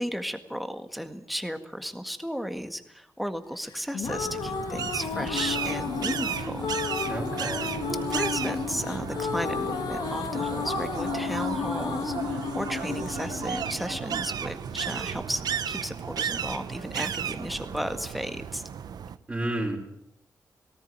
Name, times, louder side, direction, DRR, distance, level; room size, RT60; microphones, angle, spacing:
voice 1, 0.0-6.7 8.1-18.6, equal, ahead, 8 dB, 1.8 m, -34 dB
sound 1, 3.7-14.7, left 6 dB, 85° left, 2.0 m, -33 dB
sound 2, 4.0-19.2, right 8 dB, 75° right, 1.0 m, -35 dB
sound 3, 5.3-18.3, right 6 dB, 90° right, 2.7 m, -40 dB
voice 2, 7.1-7.8 19.3-19.8, right 1 dB, 20° right, -1 dB, 4.7 m, -31 dB
19.0 x 17.5 x 9.3 m, 0.78 s
wide cardioid pair, 130°, 7 cm